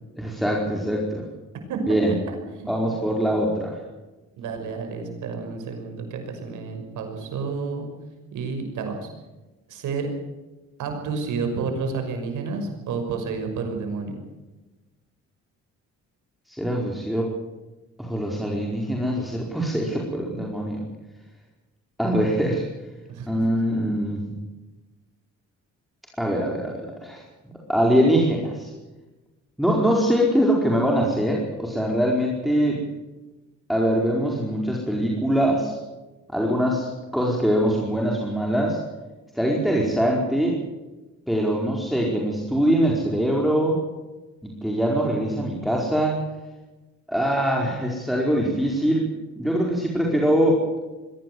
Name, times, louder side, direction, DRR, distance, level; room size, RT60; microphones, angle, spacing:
voice 1, 0.2-1.2 1.9-2.1 2.7-3.7 16.5-17.3 18.0-20.8 22.0-22.6 23.3-24.2 26.2-27.2 27.7-28.7 29.6-32.8 33.7-35.8 36.3-38.8 39.3-40.6 41.3-43.8 44.4-46.2 47.1-49.1 49.4-50.6, equal, ahead, -2 dB, 4.7 m, -23 dB
voice 2, 2.3-2.9 4.4-7.8 8.3-9.1 9.7-10.1 10.8-14.2 23.1-23.5, right 4 dB, 80° right, 4 dB, 6.0 m, -30 dB
22.0 x 17.5 x 8.0 m, 1.1 s
cardioid pair, 90°, 30 cm